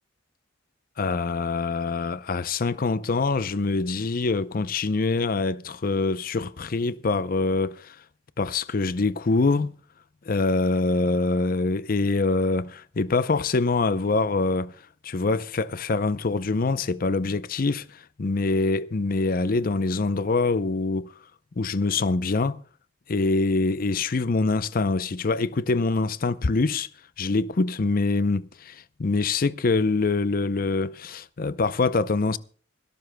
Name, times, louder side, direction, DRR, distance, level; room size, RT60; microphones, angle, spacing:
voice 1, 1.0-8.0 8.4-9.8 10.3-14.7 15.0-21.1 21.6-22.6 23.1-26.9 27.2-32.4, left 3 dB, 50° left, 0.6 m, -24 dB
25.5 x 12.5 x 2.2 m
head